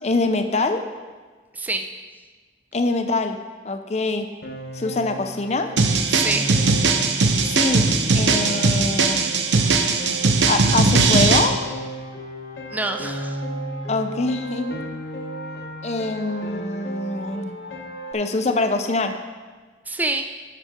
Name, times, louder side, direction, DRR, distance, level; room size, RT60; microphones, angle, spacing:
voice 1, 0.0-0.8 2.7-3.4 3.6-4.3 4.7-5.7 7.4-7.9 8.1-9.2 10.5-11.6 13.9-14.8 15.8-17.5 18.1-19.2, left 3 dB, 40° left, 7 dB, 0.6 m, -24 dB
voice 2, 1.5-1.9 6.1-6.6 9.1-9.3 12.7-13.4 19.9-20.3, right 2 dB, 10° right, 6 dB, 0.5 m, -27 dB
Piano, 4.4-18.1, equal, 75° left, 1.0 m, -34 dB
sound 1, 5.8-11.5, right 4 dB, 85° right, 0.8 m, -19 dB
11.5 x 6.5 x 3.7 m, 1.4 s
head